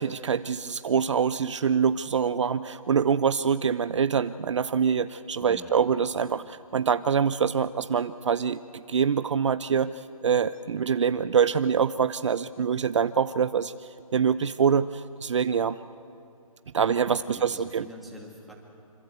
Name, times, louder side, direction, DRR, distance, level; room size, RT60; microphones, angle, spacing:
voice 1, 0.0-15.8 16.7-17.8, right 7 dB, 55° right, 14 dB, 0.7 m, -25 dB
voice 2, 5.4-5.8 17.3-18.5, right 1 dB, ahead, -2 dB, 2.4 m, -45 dB
26.0 x 25.5 x 8.2 m, 2.5 s
hypercardioid pair, 160°, 18 cm